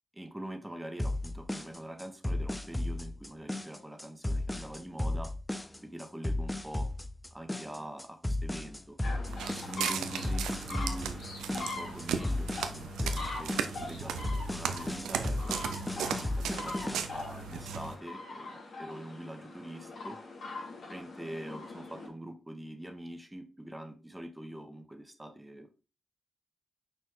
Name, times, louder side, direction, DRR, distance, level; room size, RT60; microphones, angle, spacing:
voice 1, 0.1-5.3 5.8-6.9 7.3-9.0 9.6-11.2 11.5-20.2 20.9-25.7, right 1 dB, 10° right, 7 dB, 1.4 m, -44 dB
sound 1, 1.0-17.0, left 1 dB, 15° left, 0.6 m, -34 dB
sound 2, 9.0-22.1, left 3 dB, 70° left, 2.5 m, -43 dB
Walk footsteps, 9.3-17.9, right 7 dB, 90° right, 0.5 m, -37 dB
6.0 x 4.3 x 3.7 m, 0.33 s
supercardioid pair, 40°, 0 cm